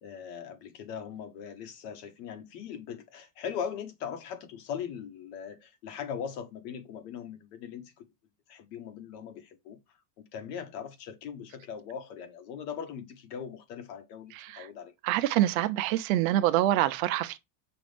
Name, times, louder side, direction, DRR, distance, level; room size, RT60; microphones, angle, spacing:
voice 1, 0.0-8.1 8.5-9.8 10.3-14.9, left 7 dB, 75° left, 1.3 m, -40 dB
voice 2, 14.3-14.7 15.0-17.4, right 14 dB, 60° right, 0.6 m, -26 dB
6.1 x 2.5 x 3.4 m
cardioid pair, 170°, 48 cm